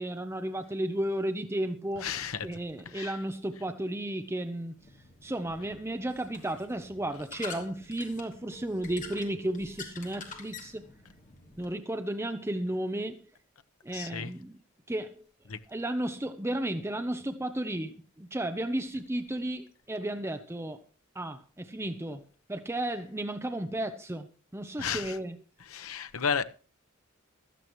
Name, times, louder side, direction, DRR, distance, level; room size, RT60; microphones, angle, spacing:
voice 1, 0.0-2.1 2.4-4.7 5.2-10.9 11.6-13.2 13.8-14.6 14.9-15.2 15.7-20.8 21.1-22.2 22.5-25.4, right 1 dB, 10° right, 0.8 m, -33 dB
voice 2, 2.0-2.5 2.8-3.2 13.9-14.3 15.5-15.6 24.8-25.2 25.6-26.4, left 6 dB, 80° left, 1.0 m, -33 dB
sound 1, 4.8-11.7, left 4 dB, 40° left, 3.0 m, -47 dB
16.0 x 13.5 x 3.1 m
head